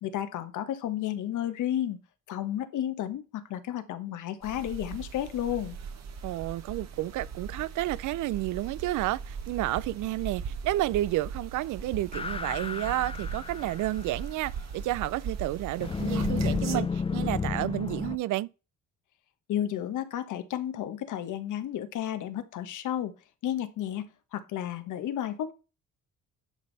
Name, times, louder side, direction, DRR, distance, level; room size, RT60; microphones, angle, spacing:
voice 1, 0.0-2.0 2.3-5.8 19.5-23.1 23.4-25.5, left 11 dB, 80° left, 1.3 m, -32 dB
sound 1, 4.4-16.8, right 6 dB, 60° right, 1.5 m, -39 dB
voice 2, 6.2-18.5, right 16 dB, 80° right, 0.5 m, -31 dB
sound 2, 12.1-14.1 15.8-18.2, left 5 dB, 20° left, 0.4 m, -31 dB
10.5 x 5.4 x 4.0 m
cardioid pair, 90°, 30 cm